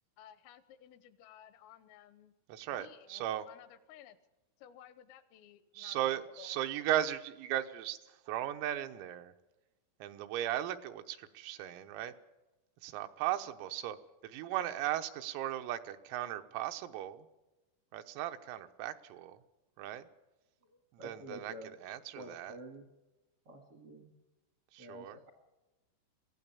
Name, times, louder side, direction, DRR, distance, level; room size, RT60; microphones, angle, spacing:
voice 1, 0.2-2.3 2.7-4.2 4.6-6.6, left 11 dB, 80° left, 13 dB, 3.6 m, -56 dB
voice 2, 2.5-3.5 5.8-8.0 8.3-9.3 10.0-12.1 12.8-14.0 14.2-17.3 17.9-19.4 19.8-20.0 20.9-22.6 24.7-25.2, right 12 dB, 90° right, 7 dB, 3.7 m, -37 dB
voice 3, 21.0-21.7 22.1-22.8 23.4-24.1 24.8-25.3, equal, 70° right, 5 dB, 1.4 m, -48 dB
23.5 x 16.5 x 7.1 m, 1.1 s
omnidirectional pair, 6.0 m